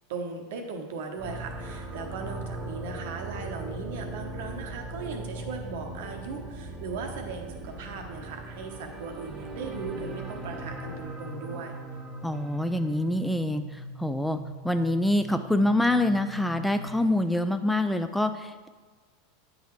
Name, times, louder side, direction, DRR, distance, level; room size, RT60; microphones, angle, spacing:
voice 1, 0.1-11.7, right 4 dB, 65° right, 4 dB, 0.9 m, -38 dB
sound 1, 1.2-13.1, right 2 dB, 25° right, 0.8 m, -39 dB
sound 2, 9.8-17.3, right 2 dB, 75° left, 1.3 m, -42 dB
voice 2, 12.2-14.4 14.6-18.7, left 1 dB, 5° left, 9 dB, 0.3 m, -26 dB
9.0 x 3.9 x 3.1 m, 1.4 s
hypercardioid pair, 90°, 0 cm